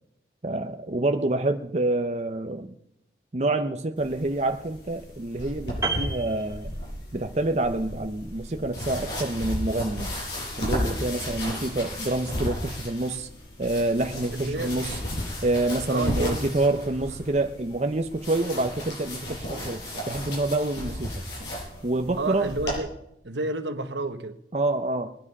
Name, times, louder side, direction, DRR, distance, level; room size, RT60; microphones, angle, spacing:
voice 1, 0.4-2.7 3.3-6.7 7.1-10.1 10.6-13.3 13.6-14.9 15.4-19.8 20.1-21.1 21.8-22.5 24.5-25.2, right 2 dB, 35° right, 0.7 m, -27 dB
sound 1, 4.0-22.8, left 1 dB, 75° left, 7.5 m, -34 dB
Piano, 5.8-7.3 7.5-7.8, right 4 dB, 15° right, 2.3 m, -32 dB
voice 2, 14.3-14.7 15.9-16.4 22.2-22.9 23.2-24.4, right 2 dB, 80° right, 1.2 m, -30 dB
21.0 x 9.9 x 5.4 m
head